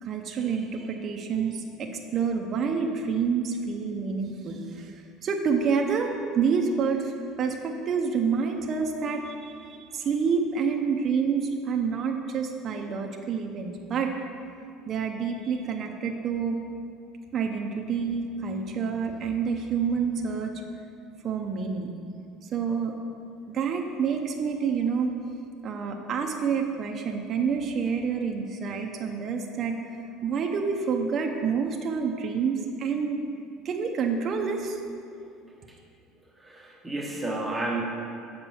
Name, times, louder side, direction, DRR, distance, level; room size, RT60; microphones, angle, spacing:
voice 1, 0.0-7.1 7.4-14.1 14.9-16.6 17.3-20.5 21.2-21.9 22.5-22.9 23.5-25.1 25.6-33.2 33.6-34.8, right 5 dB, 35° right, 2 dB, 0.7 m, -28 dB
voice 2, 36.4-37.8, right 2 dB, 10° right, -2 dB, 0.9 m, -31 dB
7.2 x 5.2 x 7.0 m, 2.4 s
cardioid pair, 150°, 0 cm